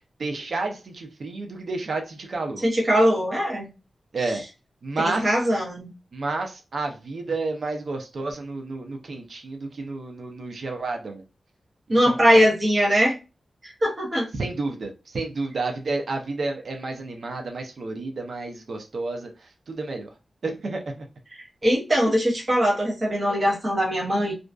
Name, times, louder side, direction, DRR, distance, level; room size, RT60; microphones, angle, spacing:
voice 1, 0.2-2.6 4.1-4.4 4.8-5.3 6.1-11.2 11.9-12.5 14.3-20.1 20.4-21.0, right 3 dB, 70° right, 3 dB, 0.5 m, -31 dB
voice 2, 2.6-3.7 5.0-5.9 11.9-13.2 13.6-14.3 21.6-24.3, equal, 35° right, -3 dB, 0.8 m, -21 dB
2.5 x 2.3 x 2.2 m, 0.29 s
wide cardioid pair, 100°, 0 cm